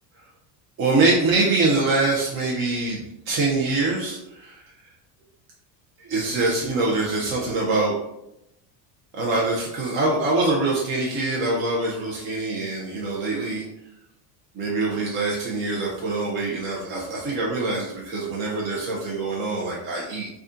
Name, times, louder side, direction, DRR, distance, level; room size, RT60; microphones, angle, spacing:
voice 1, 0.8-4.6 6.0-8.0 9.1-13.6 14.5-20.3, right 3 dB, 30° right, -3 dB, 0.6 m, -24 dB
5.1 x 2.4 x 2.6 m, 0.84 s
cardioid pair, 160°, 42 cm